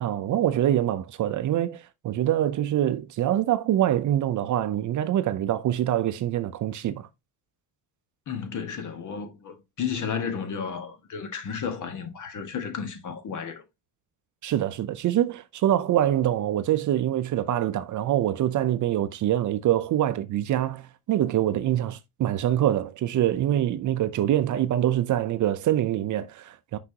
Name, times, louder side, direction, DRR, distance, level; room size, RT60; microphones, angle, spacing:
voice 1, 0.0-7.1 14.4-26.8, right 12 dB, 45° right, 0.6 m, -25 dB
voice 2, 8.3-13.6, left 6 dB, 45° left, 1.5 m, -33 dB
6.0 x 5.7 x 2.8 m
cardioid pair, 115°, 41 cm